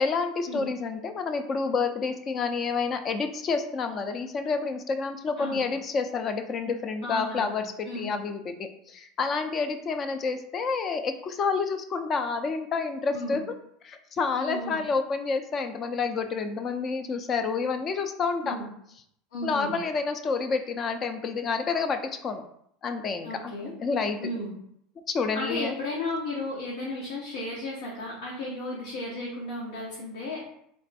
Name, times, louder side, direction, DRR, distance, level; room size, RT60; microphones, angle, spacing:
voice 1, 0.0-13.4 13.8-18.6 19.4-22.4 22.8-23.5 23.8-24.2 25.1-25.7, left 4 dB, 40° left, 8 dB, 0.5 m, -29 dB
voice 2, 5.4-5.7 7.0-7.6 7.8-8.1 13.1-13.4 14.3-14.8 18.4-18.7 19.3-19.7 23.2-23.7 24.2-24.5 25.3-30.4, left 1 dB, 85° left, -5 dB, 1.0 m, -34 dB
3.4 x 2.1 x 4.1 m, 0.70 s
hypercardioid pair, 90°, 0 cm